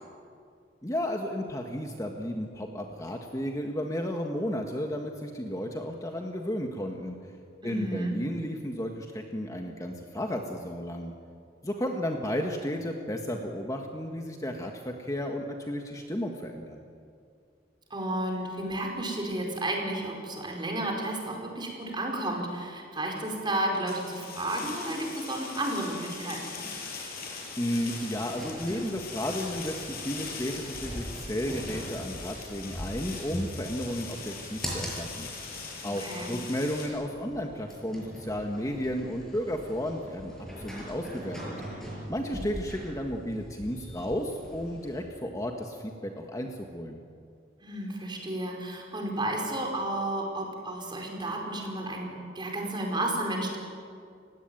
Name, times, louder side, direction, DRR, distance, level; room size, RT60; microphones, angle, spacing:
voice 1, 0.8-7.2 7.6-11.1 11.6-16.8 27.6-29.7 30.0-35.5 35.8-41.5 42.1-47.0, equal, 20° left, 3 dB, 1.6 m, -33 dB
voice 2, 7.6-8.2 17.9-26.6 35.8-36.3 47.6-53.6, right 1 dB, 25° right, 1 dB, 5.0 m, -32 dB
sound 1, 23.9-36.9, left 4 dB, 55° left, 6.1 m, -41 dB
sound 2, 27.7-45.0, equal, 5° left, 6.7 m, -42 dB
30.0 x 16.5 x 9.2 m, 2.3 s
head